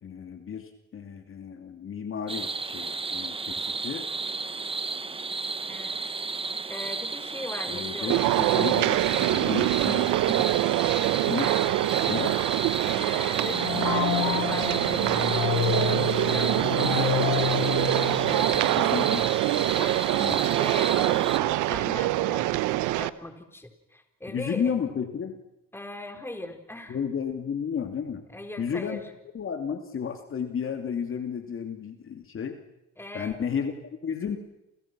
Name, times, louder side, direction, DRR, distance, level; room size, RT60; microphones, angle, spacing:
voice 1, 0.0-4.1 7.7-10.4 11.3-11.5 12.1-12.4 18.7-19.2 20.1-20.4 24.3-25.4 26.9-28.2 28.6-29.0 29.3-32.6 33.1-34.4, left 7 dB, 45° left, 6 dB, 2.6 m, -32 dB
sound 1, 2.3-21.4, right 3 dB, 20° right, 1.1 m, -33 dB
voice 2, 5.7-6.1 6.7-8.4 11.5-11.6 12.8-17.5 18.2-19.2 19.7-22.6 22.8-24.7 25.7-27.0 28.3-29.0 33.0-33.4, left 1 dB, 10° left, 5 dB, 4.4 m, -39 dB
sound 2, 8.1-23.1, right 16 dB, 90° right, 0.9 m, -25 dB
sound 3, 13.4-18.9, left 15 dB, 85° left, 1.1 m, -29 dB
29.0 x 28.5 x 6.1 m, 0.86 s
cardioid pair, 100°, 30 cm